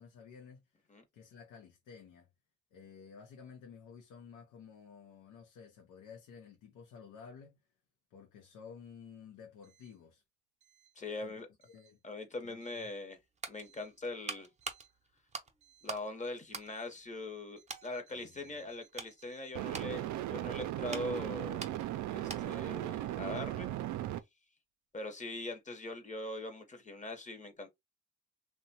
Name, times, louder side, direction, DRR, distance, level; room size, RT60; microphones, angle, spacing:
voice 1, 0.0-0.8 1.1-2.3 2.7-7.6 8.1-10.2 11.2-11.3 11.7-12.0 12.4-12.9 18.1-18.7, left 6 dB, 85° left, 0.6 m, -53 dB
voice 2, 11.0-11.5 12.0-13.2 13.5-14.5 15.8-21.7 22.1-23.7 24.9-27.7, left 2 dB, 25° left, 0.9 m, -42 dB
sound 1, 13.0-16.1 16.4-17.4 17.7-17.9 18.5-22.7 23.0-23.2, right 4 dB, 25° right, 0.6 m, -46 dB
sound 2, 14.7-14.8 19.6-24.2, right 13 dB, 70° right, 0.4 m, -37 dB
2.8 x 2.2 x 2.7 m
cardioid pair, 90°, 30 cm